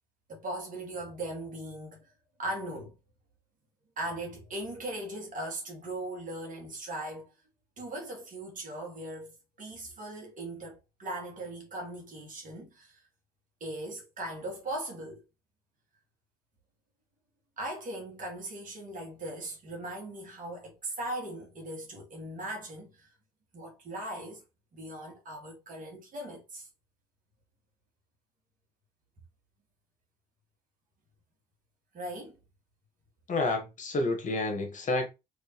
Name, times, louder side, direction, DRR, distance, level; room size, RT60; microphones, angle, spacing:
voice 1, 0.3-2.1 2.4-3.0 4.0-7.3 7.8-13.0 13.6-15.2 17.6-23.1 23.5-24.4 24.7-26.7 31.9-32.4, right 1 dB, 45° right, 1.9 m, -39 dB
voice 2, 33.3-35.1, left 2 dB, 45° left, 1.3 m, -29 dB
3.4 x 3.3 x 3.0 m
hypercardioid pair, 50°, 18 cm